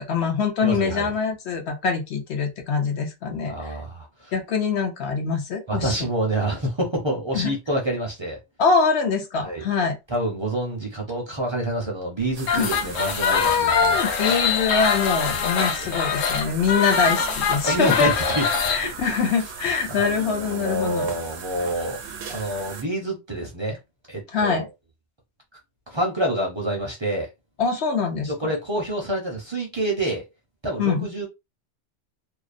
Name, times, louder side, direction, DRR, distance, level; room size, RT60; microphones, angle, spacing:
voice 1, 0.0-3.7 4.3-5.9 7.3-7.5 8.6-10.0 12.5-12.7 13.3-18.1 18.7-21.0 24.3-24.7 27.6-28.3 30.8-31.1, left 5 dB, 65° left, 0.9 m, -24 dB
voice 2, 0.6-1.1 3.5-4.3 5.7-8.4 9.4-9.6 10.1-14.2 17.6-18.4 18.7-18.9 19.9-22.0 22.3-23.8 24.1-24.6 25.9-27.3 28.2-30.2 30.6-31.3, right 1 dB, 35° right, 0.5 m, -27 dB
sound 1, 12.3-22.8, right 5 dB, 65° right, 0.8 m, -38 dB
sound 2, 12.4-18.8, left 6 dB, 90° left, 1.0 m, -23 dB
2.6 x 2.0 x 2.5 m
omnidirectional pair, 1.3 m